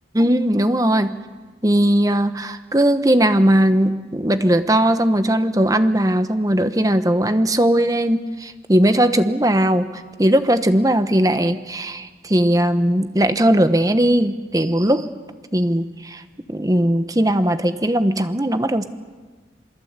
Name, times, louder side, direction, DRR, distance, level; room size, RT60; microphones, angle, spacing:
voice 1, 0.1-1.2 1.6-15.1 15.5-16.2 16.5-18.8, right 1 dB, 20° right, 10 dB, 1.1 m, -18 dB
27.5 x 21.5 x 8.2 m, 1.3 s
head